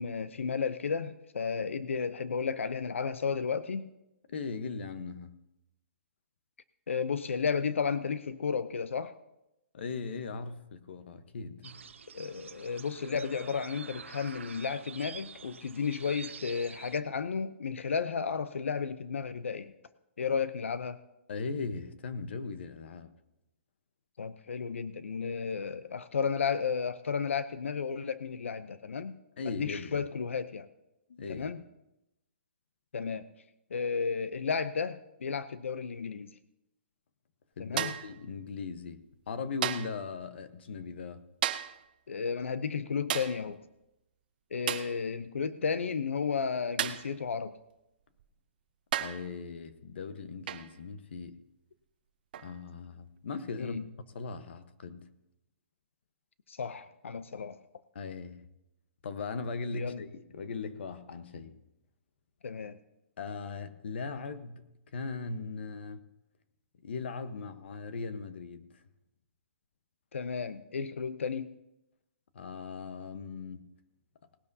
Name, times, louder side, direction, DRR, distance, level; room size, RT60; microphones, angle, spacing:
voice 1, 0.0-3.9 6.9-9.1 12.1-19.7 20.2-21.0 24.2-29.2 29.5-30.7 31.3-31.6 32.9-33.3 33.7-36.3 37.6-38.0 42.1-43.6 44.5-47.5 53.6-53.8 56.5-57.6 59.7-60.0 62.4-62.8 70.1-71.5, left 6 dB, 85° left, 0.7 m, -33 dB
voice 2, 4.3-5.4 9.7-11.8 21.3-23.1 29.4-30.0 31.1-31.5 37.6-41.2 49.0-51.3 52.4-53.8 54.1-55.1 57.9-58.4 59.0-61.5 63.2-66.0 66.8-68.7 72.3-73.7, left 4 dB, 60° left, 1.1 m, -39 dB
sound 1, 11.6-17.0, right 6 dB, 85° right, 0.9 m, -47 dB
sound 2, 37.8-38.2 39.6-40.0 41.4-41.8 43.1-43.4 44.7-45.0 46.8-47.1 48.2-48.3 48.9-49.3 50.5-50.7 52.3-52.5, right 11 dB, 45° right, 0.7 m, -33 dB
19.0 x 12.5 x 2.8 m
hypercardioid pair, 160°, 7 cm